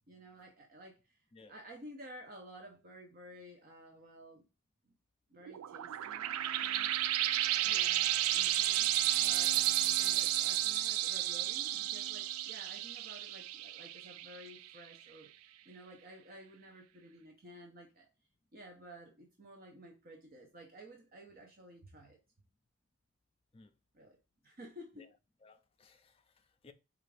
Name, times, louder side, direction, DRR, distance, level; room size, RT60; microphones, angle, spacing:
voice 1, 0.0-1.2 1.5-4.5 5.3-6.9 7.6-18.1 18.5-22.2 23.9-24.2 24.4-25.1, equal, 45° right, 0.7 m, -53 dB
sound 1, 5.5-14.6, right 13 dB, 85° right, 0.3 m, -32 dB
voice 2, 7.6-7.9 23.5-23.7 25.0-25.1 25.4-26.7, left 4 dB, 25° left, 0.4 m, -59 dB
4.3 x 2.5 x 4.8 m
head